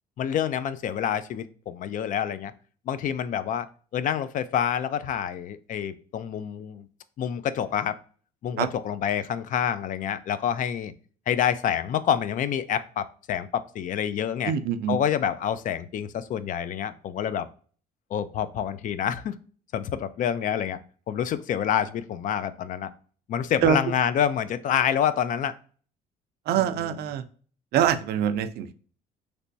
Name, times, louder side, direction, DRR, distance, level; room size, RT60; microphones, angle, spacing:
voice 1, 0.2-2.5 2.9-3.7 3.9-6.9 7.2-8.0 8.4-10.9 11.3-14.5 14.9-17.5 18.1-19.4 19.7-20.8 21.1-22.9 23.3-25.5 26.6-26.7, left 9 dB, 50° left, 13 dB, 0.4 m, -27 dB
voice 2, 14.5-15.0 23.6-23.8 26.5-27.2 27.7-28.7, right 9 dB, 70° right, 11 dB, 0.4 m, -24 dB
3.3 x 3.0 x 2.6 m, 0.42 s
cardioid pair, 110°, 17 cm